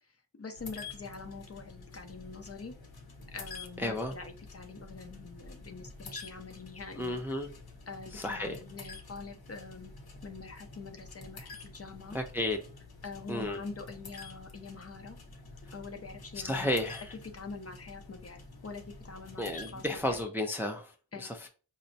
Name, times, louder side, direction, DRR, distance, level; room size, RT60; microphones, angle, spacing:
voice 1, 0.4-2.7 3.3-7.2 7.9-9.9 10.2-12.2 13.0-15.2 15.7-16.7 17.3-20.2 21.1-21.3, left 4 dB, 35° left, 0.6 m, -44 dB
sound 1, 0.5-20.2, left 3 dB, 55° left, 0.9 m, -49 dB
voice 2, 3.8-4.2 7.0-7.5 8.1-8.6 12.1-12.6 13.3-13.6 16.4-17.2 19.4-21.5, left 1 dB, 5° right, 0.4 m, -33 dB
4.1 x 2.0 x 2.7 m
cardioid pair, 45°, 44 cm